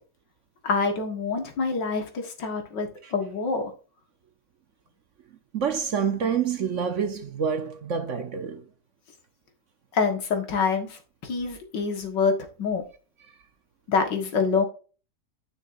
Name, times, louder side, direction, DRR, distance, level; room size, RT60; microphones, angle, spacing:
voice 1, 0.6-3.7 9.9-12.8 13.9-14.7, left 5 dB, 85° left, 2.2 m, -26 dB
voice 2, 5.5-8.6, right 7 dB, 55° right, 1.0 m, -27 dB
9.7 x 6.3 x 2.6 m
omnidirectional pair, 1.9 m